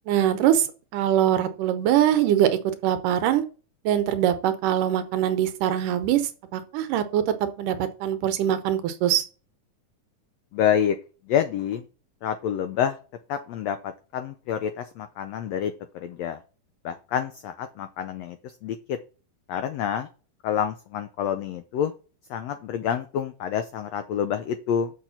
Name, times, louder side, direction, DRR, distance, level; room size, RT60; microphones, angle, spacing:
voice 1, 0.1-0.7 0.9-3.4 3.8-6.2 6.5-9.2, right 11 dB, 80° right, 10 dB, 2.4 m, -23 dB
voice 2, 10.5-11.0 11.3-11.8 12.2-13.0 13.3-16.4 16.8-18.4 18.6-19.0 19.5-20.1 20.4-21.9 22.3-24.9, left 9 dB, 90° left, 9 dB, 1.4 m, -27 dB
6.5 x 6.1 x 5.7 m, 0.36 s
omnidirectional pair, 3.8 m